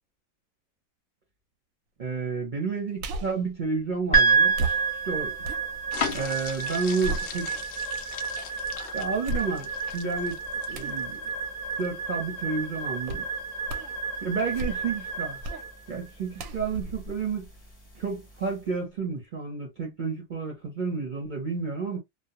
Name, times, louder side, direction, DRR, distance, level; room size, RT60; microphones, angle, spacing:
voice 1, 2.0-4.6 5.0-5.3 6.1-7.6 8.9-10.4 10.7-11.2 11.8-13.3 14.2-15.4 15.9-17.5 17.9-22.0, right 4 dB, 45° right, 0.7 m, -31 dB
sound 1, 3.0-3.5 4.5-6.3 6.7-7.8 8.3-8.4 9.2-9.9 10.7-11.0 13.1-13.3 13.7-14.0 14.4-15.0 15.4-15.7 16.4-18.0 18.4-18.5, right 2 dB, 70° right, 0.9 m, -35 dB
sound 2, 4.1-18.5, right 5 dB, 15° left, 0.7 m, -30 dB
sound 3, 5.9-11.3 11.7-11.9, left 7 dB, 70° left, 0.5 m, -37 dB
2.3 x 2.2 x 2.7 m
omnidirectional pair, 1.6 m